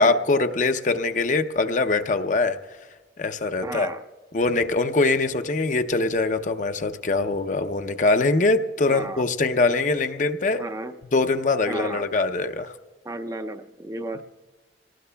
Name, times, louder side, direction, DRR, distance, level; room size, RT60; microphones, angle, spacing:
voice 1, 0.0-2.8 3.2-3.9 4.3-10.6 11.1-12.7, left 3 dB, 45° left, 8 dB, 0.6 m, -23 dB
voice 2, 3.6-4.0 8.9-9.2 10.5-10.9 11.7-12.0 13.1-14.2, right 2 dB, 20° right, 8 dB, 0.5 m, -33 dB
27.0 x 19.0 x 2.2 m, 1.3 s
head